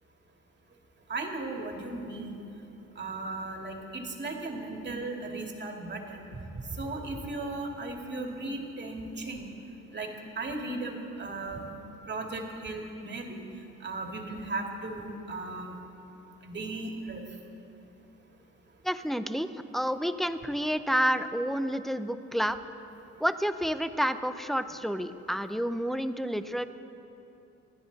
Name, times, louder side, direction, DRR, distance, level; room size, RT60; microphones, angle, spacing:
voice 1, 1.1-2.4 3.0-6.3 6.5-9.5 9.9-10.1 10.4-11.7 12.1-13.4 13.8-15.7 16.4-17.2, right 2 dB, 35° right, 2 dB, 2.3 m, -36 dB
voice 2, 18.8-22.6 23.2-26.6, equal, ahead, 10 dB, 0.6 m, -29 dB
27.0 x 10.0 x 4.1 m, 2.9 s
cardioid pair, 90°, 30 cm